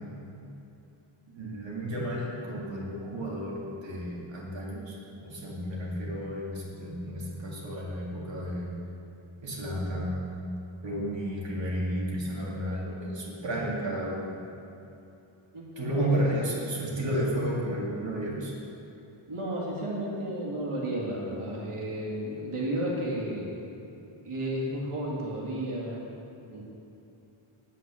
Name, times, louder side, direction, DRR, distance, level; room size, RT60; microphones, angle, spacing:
voice 1, 1.3-8.7 9.4-10.3 10.8-14.4 15.8-18.5, equal, 60° right, -4 dB, 2.2 m, -32 dB
voice 2, 15.9-16.3 19.3-23.5 24.2-26.0 26.5-26.7, right 1 dB, 90° right, -4 dB, 2.2 m, -32 dB
9.9 x 9.1 x 6.2 m, 2.9 s
wide cardioid pair, 120°, 50 cm